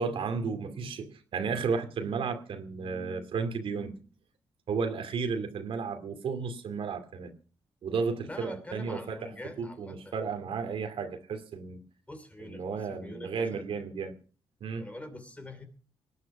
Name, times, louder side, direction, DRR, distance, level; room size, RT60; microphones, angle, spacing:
voice 1, 0.0-4.0 4.7-7.3 7.8-9.3 9.6-11.8 12.4-14.1 14.6-14.9, right 5 dB, 75° right, 7 dB, 2.4 m, -33 dB
voice 2, 8.3-10.1 12.1-13.7 14.8-15.7, left 1 dB, 15° left, 8 dB, 2.9 m, -44 dB
19.0 x 9.8 x 6.0 m, 0.40 s
wide cardioid pair, 130°, 9 cm